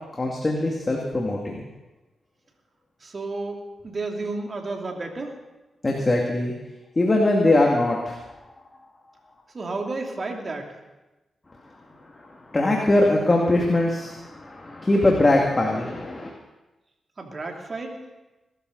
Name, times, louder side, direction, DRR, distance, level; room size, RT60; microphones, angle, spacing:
voice 1, 0.2-1.6 5.8-6.5 7.0-8.2 12.5-16.3, left 2 dB, 30° left, -1 dB, 2.4 m, -21 dB
voice 2, 3.0-5.4 9.5-10.8 17.2-18.0, right 3 dB, 45° right, 2 dB, 3.0 m, -32 dB
21.5 x 13.0 x 4.1 m, 1.1 s
cardioid pair, 60°, 0 cm